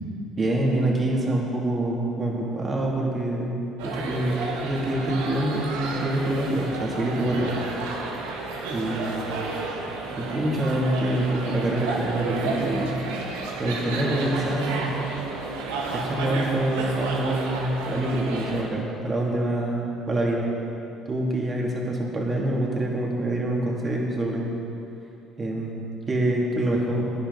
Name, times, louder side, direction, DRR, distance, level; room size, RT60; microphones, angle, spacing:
voice 1, 0.4-7.5 8.7-9.4 10.2-13.0 13.6-15.0 15.9-20.5 21.0-24.5 25.4-27.0, right 1 dB, 35° right, -2 dB, 3.0 m, -26 dB
sound 1, 3.8-18.6, right 3 dB, 85° right, 1.5 m, -32 dB
16.5 x 10.0 x 4.2 m, 2.8 s
hypercardioid pair, 65°, 0 cm